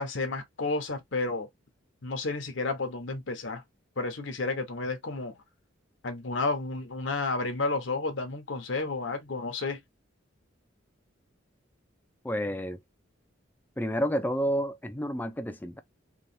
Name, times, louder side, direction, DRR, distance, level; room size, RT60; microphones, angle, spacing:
voice 1, 0.0-1.5 2.0-3.6 4.0-5.3 6.0-9.8, left 3 dB, 65° left, 0.8 m, -31 dB
voice 2, 12.2-12.8 13.8-15.8, equal, 10° left, 0.4 m, -30 dB
3.0 x 2.3 x 2.6 m
head